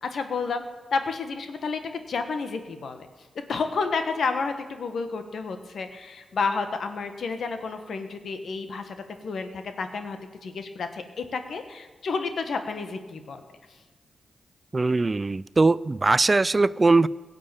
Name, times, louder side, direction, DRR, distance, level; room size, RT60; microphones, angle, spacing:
voice 1, 0.0-0.6 0.9-3.1 3.5-9.0 9.2-13.4, left 4 dB, 75° left, 8 dB, 1.3 m, -30 dB
voice 2, 14.7-17.1, right 3 dB, 35° right, 19 dB, 0.4 m, -21 dB
17.0 x 6.7 x 8.6 m, 1.3 s
supercardioid pair, 45°, 0 cm